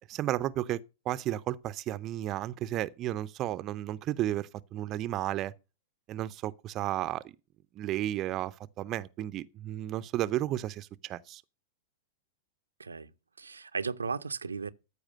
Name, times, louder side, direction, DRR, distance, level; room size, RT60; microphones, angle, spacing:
voice 1, 0.1-5.5 6.1-7.2 7.8-11.4, right 13 dB, 35° right, 0.5 m, -33 dB
voice 2, 12.8-13.1 13.4-14.7, right 5 dB, 85° right, 0.6 m, -35 dB
13.5 x 4.9 x 6.5 m
figure-of-eight pair, 100°, 0 cm